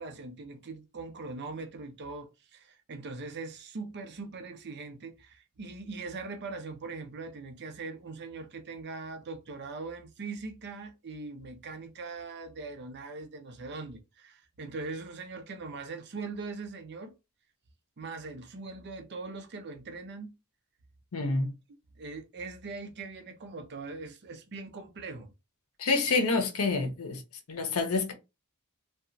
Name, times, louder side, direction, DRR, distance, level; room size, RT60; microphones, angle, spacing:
voice 1, 0.0-17.1 18.0-20.4 22.0-25.3, right 3 dB, 50° right, 0.5 m, -41 dB
voice 2, 21.1-21.5 25.8-27.2 27.5-28.1, left 3 dB, 70° left, 0.7 m, -27 dB
2.8 x 2.2 x 2.5 m
head